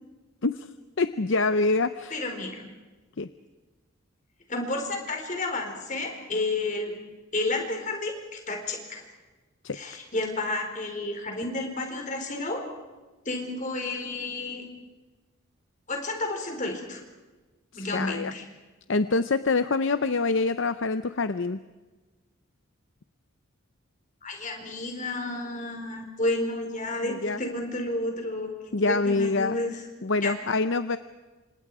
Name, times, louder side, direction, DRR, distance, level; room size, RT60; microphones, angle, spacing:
voice 1, 1.0-2.2 3.2-3.3 9.6-9.8 17.7-18.3 18.9-21.6 27.0-27.4 28.7-29.6 30.0-31.0, left 3 dB, 60° left, 11 dB, 0.7 m, -25 dB
voice 2, 2.1-2.6 4.5-6.9 7.3-9.0 9.7-12.6 13.2-14.6 15.9-17.0 17.7-18.4 24.2-29.8 30.2-30.3, left 2 dB, 35° left, 3 dB, 4.4 m, -31 dB
29.0 x 26.0 x 4.9 m, 1.2 s
head